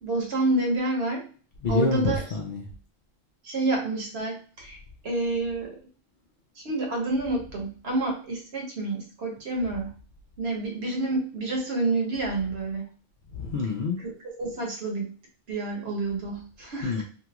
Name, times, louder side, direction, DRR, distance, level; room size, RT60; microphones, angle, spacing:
voice 1, 0.0-1.2 1.7-2.2 3.4-4.8 5.0-5.8 6.6-9.9 10.4-12.8 14.0-15.1 15.5-17.0, right 2 dB, 55° right, 0 dB, 1.1 m, -28 dB
voice 2, 1.6-2.6 13.3-14.0 16.8-17.0, left 4 dB, 55° left, -1 dB, 0.5 m, -27 dB
2.8 x 2.3 x 2.9 m, 0.39 s
omnidirectional pair, 1.4 m